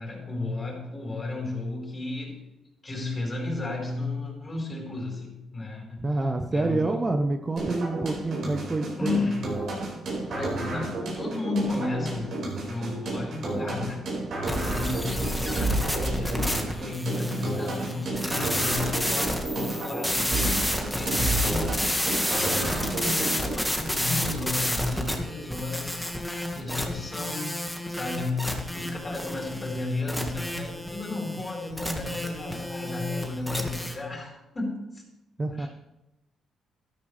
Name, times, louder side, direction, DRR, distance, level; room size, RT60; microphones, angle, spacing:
voice 1, 0.0-2.4 2.8-7.1 9.0-9.7 10.3-12.3 12.7-14.1 14.5-20.4 20.9-22.0 22.3-26.0 26.6-27.5 27.9-35.0 35.5-35.7, left 2 dB, 30° left, 0 dB, 4.3 m, -33 dB
voice 2, 6.0-9.2 35.4-35.7, right 2 dB, 25° right, 6 dB, 0.7 m, -27 dB
sound 1, 7.6-23.6, right 2 dB, 65° right, 4.9 m, -31 dB
sound 2, 14.5-33.9, left 1 dB, 5° left, 1.7 m, -30 dB
12.5 x 12.5 x 3.3 m, 0.94 s
cardioid pair, 90°, 0 cm